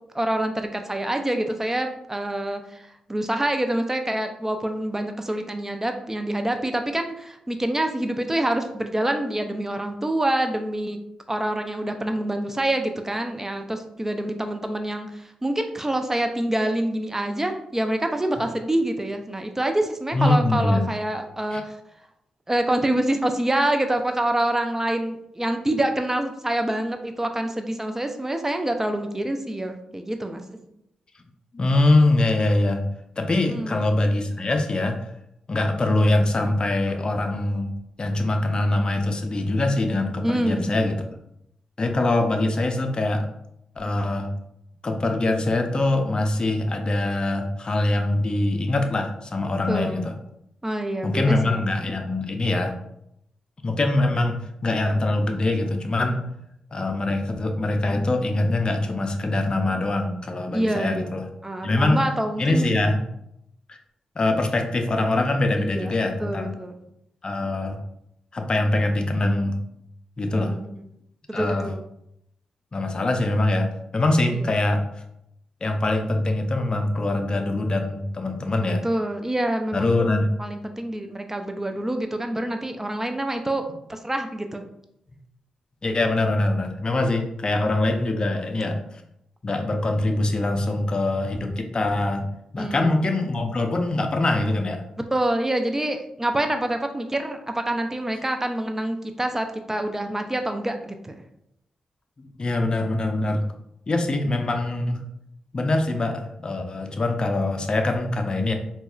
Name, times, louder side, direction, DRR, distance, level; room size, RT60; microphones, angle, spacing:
voice 1, 0.1-11.0 11.3-21.8 22.5-30.6 33.5-33.8 40.2-40.7 49.7-50.0 50.6-51.6 60.5-61.1 61.4-62.7 65.6-65.9 66.2-66.7 70.3-70.7 71.3-71.8 74.3-74.5 78.6-80.0 80.4-84.6 92.6-93.0 95.1-101.2, right 1 dB, 15° right, 6 dB, 0.4 m, -26 dB
voice 2, 20.1-20.8 21.5-21.6 31.5-32.9 33.2-35.1 35.5-37.7 38.0-41.0 41.8-43.3 43.8-44.3 44.8-50.1 51.0-52.8 53.6-56.2 56.7-61.3 61.6-62.0 62.4-63.0 63.7-63.8 64.2-66.5 67.2-67.8 68.3-69.6 70.2-70.5 71.3-71.7 72.7-75.0 75.6-78.8 79.7-80.3 85.8-88.8 89.4-92.3 92.5-94.8 102.2-103.5 103.9-105.1 105.5-108.5, left 2 dB, 40° left, 4 dB, 0.5 m, -23 dB
4.0 x 2.4 x 2.3 m, 0.78 s
cardioid pair, 50°, 2 cm